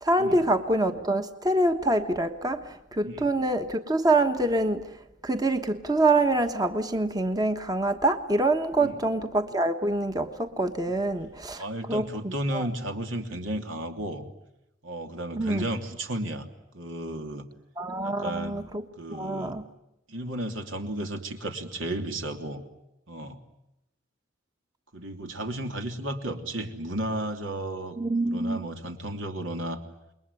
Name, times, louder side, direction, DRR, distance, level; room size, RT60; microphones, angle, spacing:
voice 1, 0.0-2.6 2.9-4.9 5.2-11.6 11.9-12.7 15.4-15.6 17.8-18.8 19.1-19.6 28.0-28.6, right 2 dB, 20° right, 7 dB, 1.2 m, -25 dB
voice 2, 11.6-14.2 14.8-16.5 16.7-17.5 18.0-18.6 19.0-19.6 20.1-22.6 23.1-23.4 24.9-29.8, right 1 dB, 80° right, 4 dB, 3.1 m, -33 dB
28.0 x 21.5 x 9.8 m, 0.89 s
head